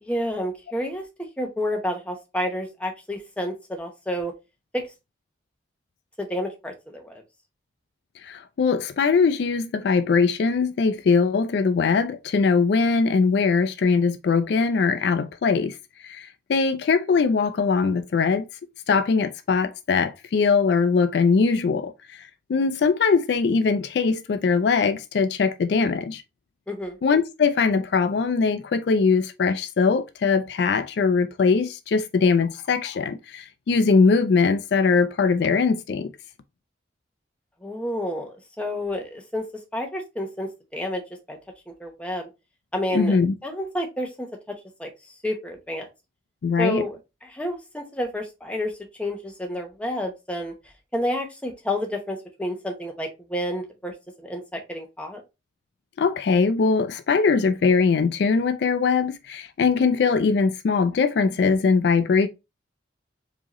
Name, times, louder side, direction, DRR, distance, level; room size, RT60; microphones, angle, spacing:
voice 1, 0.0-1.0 1.4-4.3 4.7-4.9 6.2-7.2 26.7-27.0 37.6-39.4 39.7-41.0 41.3-41.4 41.7-42.3 42.7-43.2 43.4-44.3 44.8-44.9 45.2-45.9 46.6-47.0 47.2-48.7 49.0-50.5 50.9-55.2, left 1 dB, 5° left, 0.8 m, -29 dB
voice 2, 8.2-15.8 16.0-18.5 18.9-26.2 27.0-36.1 42.9-43.3 46.4-46.8 56.0-62.3, left 5 dB, 60° left, 0.3 m, -21 dB
4.8 x 2.8 x 2.9 m
head